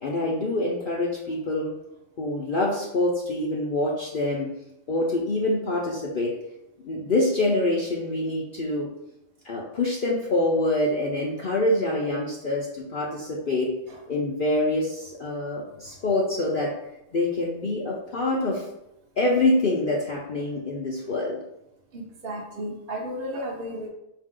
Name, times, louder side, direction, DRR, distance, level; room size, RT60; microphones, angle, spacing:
voice 1, 0.0-1.7 2.2-4.5 4.9-6.3 6.8-8.9 9.4-13.7 14.1-16.7 17.1-18.7 19.2-21.4, left 2 dB, 50° left, -3 dB, 0.7 m, -25 dB
voice 2, 21.9-23.9, equal, 45° right, -2 dB, 0.9 m, -33 dB
5.3 x 2.7 x 3.7 m, 0.84 s
omnidirectional pair, 1.4 m